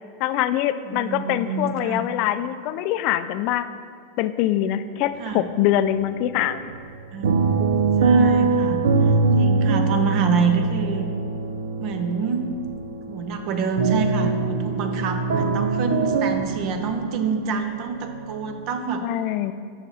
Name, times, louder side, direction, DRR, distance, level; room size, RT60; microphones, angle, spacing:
voice 1, 0.2-3.7 4.2-6.7 19.0-19.5, left 12 dB, 55° left, 12 dB, 0.3 m, -24 dB
voice 2, 0.8-2.0 5.2-5.4 7.1-7.7 8.0-8.8 9.4-11.1 11.8-12.5 13.1-19.1, right 5 dB, 50° right, 7 dB, 0.7 m, -27 dB
sound 1, 5.0-5.7 6.0-18.8, right 4 dB, 90° right, 0.5 m, -23 dB
6.7 x 6.0 x 4.0 m, 2.1 s
supercardioid pair, 125°, 0 cm